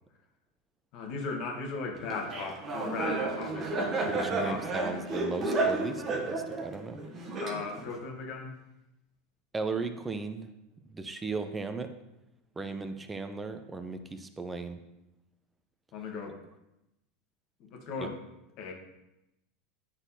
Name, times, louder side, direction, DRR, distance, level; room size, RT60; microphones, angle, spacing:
voice 1, 0.9-4.7 7.4-8.5 15.9-16.4 17.6-18.2 18.6-18.7, left 4 dB, 55° left, 2 dB, 1.3 m, -37 dB
Laughter, 2.1-8.0, right 2 dB, 35° right, 1.0 m, -32 dB
voice 2, 4.1-7.0 9.5-10.5 10.9-11.9 12.6-14.8 18.0-18.1, right 3 dB, 15° right, 9 dB, 0.6 m, -36 dB
9.7 x 4.0 x 2.7 m, 0.90 s
hypercardioid pair, 90°, 0 cm